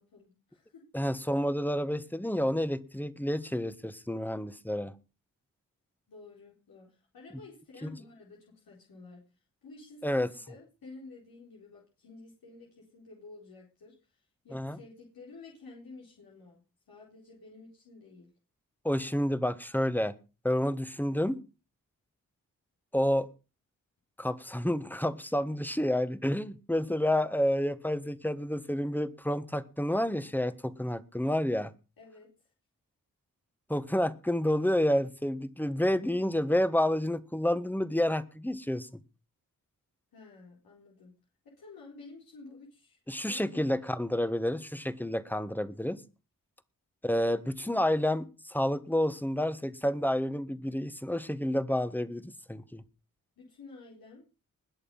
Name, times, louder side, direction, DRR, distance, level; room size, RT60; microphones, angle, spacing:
voice 1, 0.0-0.9 6.1-9.2 9.6-16.6 16.9-18.3 32.0-32.3 40.1-41.1 41.4-43.0 43.3-43.8 44.1-44.3 53.4-54.3, left 3 dB, 90° left, -3 dB, 4.3 m, -51 dB
voice 2, 0.9-4.9 10.0-10.3 14.5-14.8 18.8-20.1 20.4-21.4 22.9-23.3 24.2-31.7 33.7-39.0 43.1-46.0 47.0-52.8, left 1 dB, 5° left, 13 dB, 1.5 m, -29 dB
20.5 x 6.9 x 5.5 m, 0.32 s
cardioid pair, 60°, 35 cm